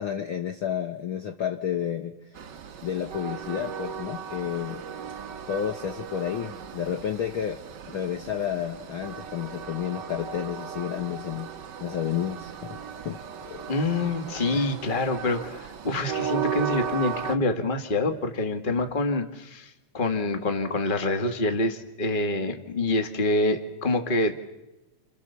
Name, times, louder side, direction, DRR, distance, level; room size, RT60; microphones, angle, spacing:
voice 1, 0.0-2.1 2.8-4.8 5.5-7.6 7.9-11.5 11.8-13.7 14.5-14.7, left 9 dB, 55° left, 5 dB, 1.6 m, -31 dB
Train, 2.3-17.4, right 7 dB, 55° right, 1.3 m, -36 dB
voice 2, 13.7-24.4, left 2 dB, 20° left, 6 dB, 1.7 m, -26 dB
30.0 x 28.0 x 7.1 m, 0.97 s
omnidirectional pair, 3.3 m